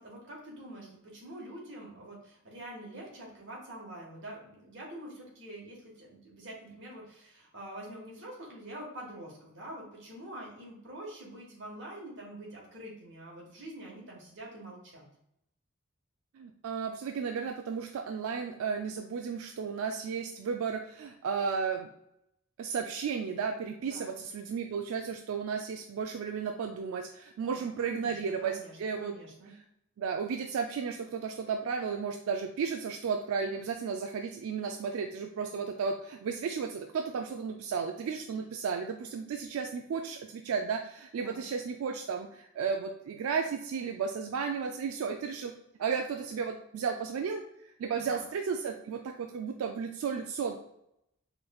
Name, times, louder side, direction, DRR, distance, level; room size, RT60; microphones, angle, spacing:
voice 1, 0.0-15.1 23.9-24.2 27.4-29.5 41.2-41.4 48.1-48.2, right 1 dB, 55° right, -2 dB, 1.3 m, -46 dB
voice 2, 16.3-21.9 22.6-29.2 29.5-29.6 30.0-45.5 45.8-50.6, right 6 dB, 90° right, 4 dB, 0.3 m, -34 dB
4.7 x 3.2 x 2.3 m, 0.79 s
head